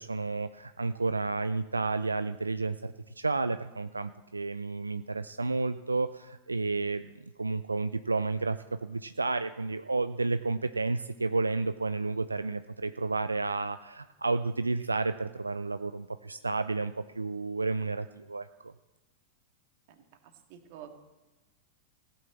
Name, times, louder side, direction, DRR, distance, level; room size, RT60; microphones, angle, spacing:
voice 1, 0.0-7.1 7.4-18.7, right 3 dB, 90° right, 12 dB, 0.4 m, -31 dB
voice 2, 19.9-20.9, right 10 dB, 55° right, 5 dB, 1.9 m, -50 dB
15.5 x 7.1 x 7.8 m, 1.1 s
figure-of-eight pair, 95°, 0 cm